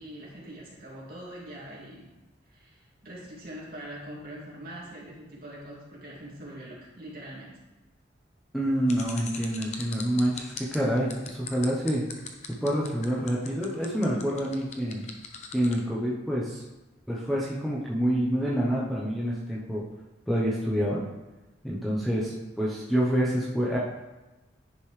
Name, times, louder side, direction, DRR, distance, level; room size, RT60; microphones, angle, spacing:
voice 1, 0.0-2.1 2.5-7.6, right 1 dB, 50° right, -5 dB, 2.4 m, -43 dB
voice 2, 8.5-12.0 12.6-15.1 15.5-16.6 17.1-19.8 20.3-21.0 21.6-23.8, equal, ahead, -6 dB, 0.9 m, -27 dB
sound 1, 8.9-15.8, left 6 dB, 35° left, 0.8 m, -40 dB
10.0 x 5.3 x 3.3 m, 1.1 s
head